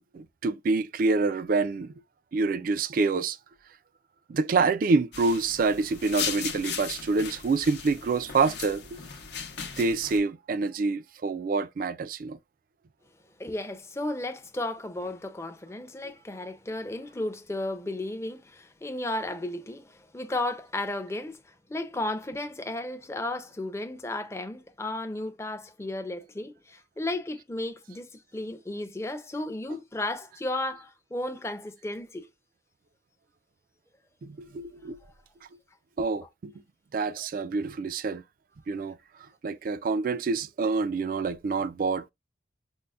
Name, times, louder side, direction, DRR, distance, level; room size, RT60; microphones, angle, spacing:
voice 1, 0.0-1.9 2.3-3.4 4.3-9.0 9.8-12.4 29.7-29.8 34.2-35.0 36.0-36.5 36.9-38.2 38.7-39.0 39.4-42.1, right 4 dB, 50° right, 0.3 m, -27 dB
sound 1, 5.1-10.2, left 7 dB, 70° left, 0.7 m, -37 dB
voice 2, 13.4-32.3 37.2-37.3, left 2 dB, 15° left, 0.5 m, -34 dB
5.3 x 2.1 x 2.3 m
head